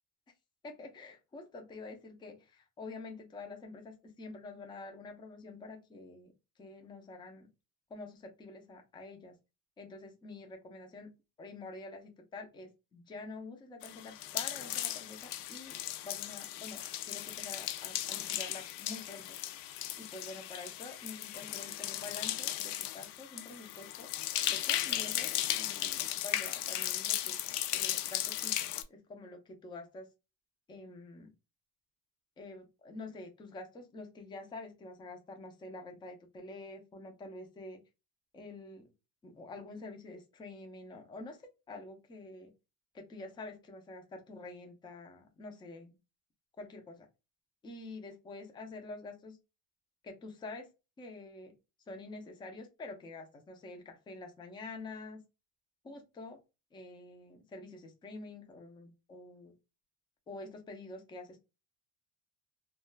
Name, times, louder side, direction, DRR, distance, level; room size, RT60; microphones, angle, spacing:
voice 1, 0.6-6.3 6.6-7.5 7.9-9.3 9.8-11.1 11.4-19.4 20.0-24.1 24.5-27.4 27.7-30.1 30.7-31.3 32.4-37.8 38.3-38.9 39.2-42.5 42.9-45.9 46.6-47.1 47.6-49.4 50.0-50.7 51.0-51.5 51.9-55.3 55.8-56.4 56.7-59.5 60.3-61.4, left 2 dB, 15° left, 3 dB, 0.3 m, -47 dB
sound 1, 13.8-28.8, left 13 dB, 90° left, 0.5 m, -36 dB
2.3 x 2.2 x 3.1 m, 0.28 s
cardioid pair, 160°, 40 cm